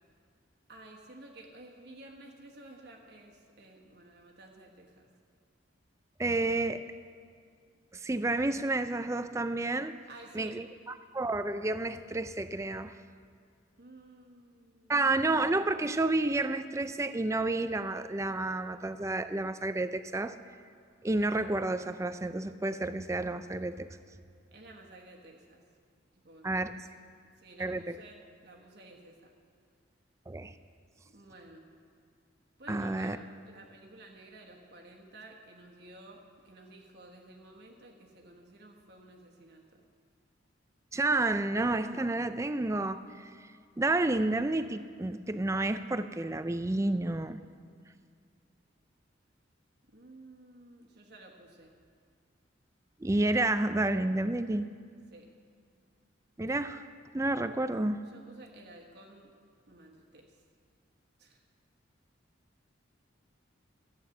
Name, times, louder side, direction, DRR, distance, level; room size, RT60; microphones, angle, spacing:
voice 1, 0.7-5.1 10.1-10.6 13.8-14.9 24.5-25.6 26.1-26.8 27.4-29.3 31.0-31.7 32.6-39.8 49.9-51.8 55.1-55.3 58.1-59.3 59.7-60.4 61.2-61.4, right 2 dB, 55° right, 0 dB, 1.3 m, -53 dB
voice 2, 6.2-6.8 7.9-10.0 10.3-12.9 14.9-20.4 21.0-23.9 26.4-26.7 27.6-28.0 30.3-30.5 32.7-33.2 40.9-43.3 43.8-47.4 53.0-54.7 56.4-56.8 57.1-58.0, right 2 dB, 15° right, 11 dB, 0.4 m, -30 dB
14.0 x 9.2 x 7.1 m, 2.1 s
head